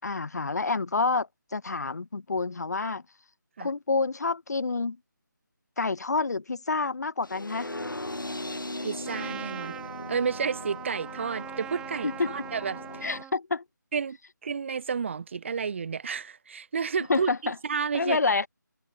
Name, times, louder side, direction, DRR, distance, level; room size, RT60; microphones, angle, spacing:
voice 1, 0.0-3.0 3.6-5.0 5.8-7.7 12.0-12.3 13.0-13.6 17.1-17.6 17.9-18.5, left 3 dB, 55° left, 5.9 m, -28 dB
sound 1, 7.2-13.2, left 1 dB, 85° left, 2.9 m, -38 dB
voice 2, 8.8-9.8 10.1-13.1 13.9-14.2 14.4-18.2, right 6 dB, 35° right, 3.9 m, -31 dB
Trumpet, 9.0-13.3, right 10 dB, 5° right, 3.0 m, -41 dB
figure-of-eight pair, 160°, 11 cm